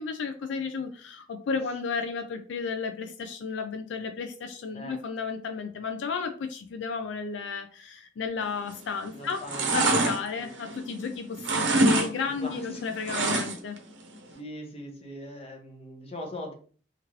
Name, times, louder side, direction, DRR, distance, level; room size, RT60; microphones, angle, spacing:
voice 1, 0.0-9.4 9.7-13.8, left 5 dB, 80° left, 7 dB, 0.3 m, -33 dB
sound 1, 8.6-9.0 9.3-11.1 11.4-12.1 12.4-13.8 14.1-14.2, right 2 dB, 80° right, 0.6 m, -25 dB
voice 2, 9.1-9.9 10.4-10.5 12.2-12.8 14.3-16.5, left 1 dB, 35° left, 2 dB, 0.8 m, -41 dB
2.9 x 2.5 x 2.9 m, 0.42 s
head